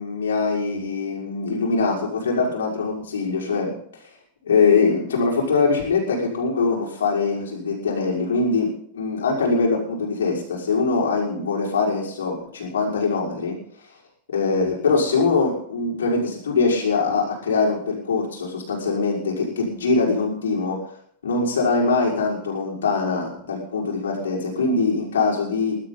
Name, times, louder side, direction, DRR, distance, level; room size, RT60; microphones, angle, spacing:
voice 1, 0.0-3.7 4.4-13.6 14.3-20.8 21.2-25.8, left 4 dB, 70° left, -2 dB, 5.5 m, -22 dB
21.0 x 12.5 x 4.1 m, 0.62 s
figure-of-eight pair, 90°, 0 cm